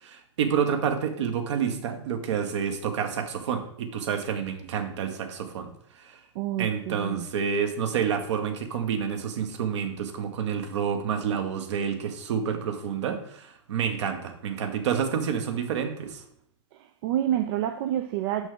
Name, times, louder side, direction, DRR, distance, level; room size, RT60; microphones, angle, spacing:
voice 1, 0.0-5.7 6.0-6.2 6.6-16.2, right 7 dB, 70° right, 1.1 m, -29 dB
voice 2, 6.4-7.3 17.0-18.5, right 11 dB, 50° right, 0.5 m, -28 dB
6.1 x 5.6 x 3.7 m
hypercardioid pair, 120°, 16 cm